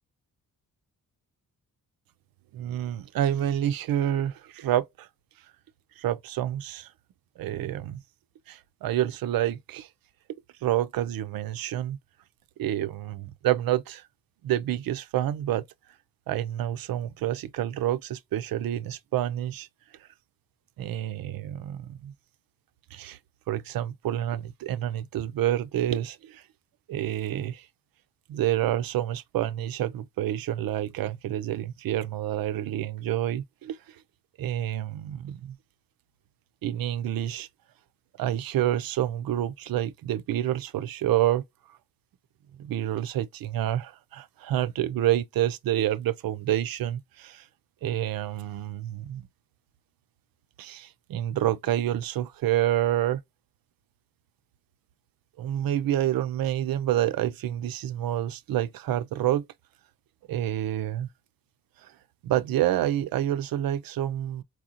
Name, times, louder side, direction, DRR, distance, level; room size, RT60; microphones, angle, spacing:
voice 1, 2.5-5.1 6.0-6.9 7.4-8.0 8.5-9.9 10.6-12.0 12.6-14.0 14.4-15.6 16.3-19.7 20.8-22.1 22.9-23.2 23.5-26.4 26.9-27.6 28.3-33.8 34.4-35.6 36.6-37.5 38.2-41.4 42.6-47.4 47.8-49.3 50.6-53.2 55.4-59.4 60.3-61.1 62.2-64.4, right 12 dB, 85° right, 0.5 m, -28 dB
4.6 x 2.4 x 2.8 m
wide cardioid pair, 140°, 34 cm